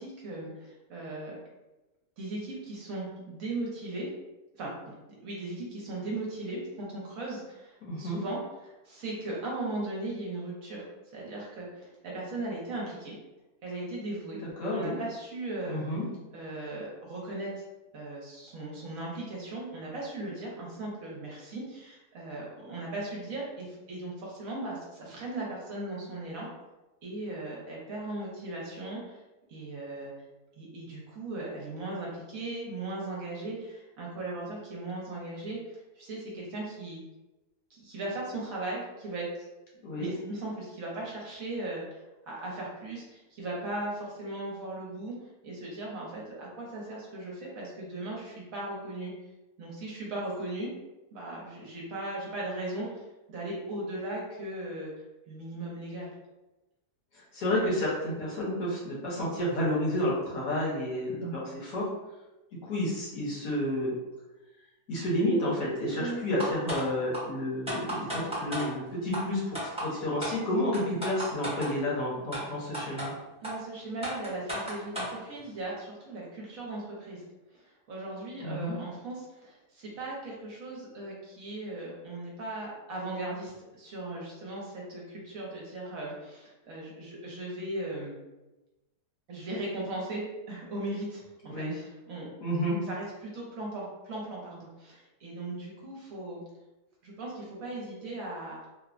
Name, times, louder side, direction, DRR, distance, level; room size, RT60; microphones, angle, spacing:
voice 1, 0.0-1.4 2.2-4.1 4.5-4.9 5.2-10.8 11.1-13.2 13.6-14.4 14.7-15.9 16.3-17.5 17.9-26.5 27.0-29.2 29.5-30.1 30.6-37.0 37.7-39.3 39.9-45.1 45.4-49.1 49.6-50.7 51.1-54.9 55.3-56.1 66.0-66.2 68.0-68.3 73.4-77.2 77.5-88.2 89.3-92.3 92.8-96.4 97.0-98.6, right 2 dB, 65° right, -4 dB, 1.0 m, -38 dB
voice 2, 7.8-8.2 14.6-15.0 15.6-16.0 39.8-40.1 57.1-61.9 62.6-63.9 64.9-73.2 78.4-78.8 91.5-91.8 92.4-92.8, left 1 dB, 65° left, -5 dB, 1.2 m, -30 dB
sound 1, 66.4-66.8 67.1-67.2 67.7-68.7 69.1-69.2 69.5-69.9 70.2-70.3 70.7-71.7 72.3-72.4 72.7-73.1 73.4-73.5 74.0-75.1, equal, 5° right, 0.8 m, -33 dB
3.2 x 2.1 x 2.4 m, 1.1 s
omnidirectional pair, 1.7 m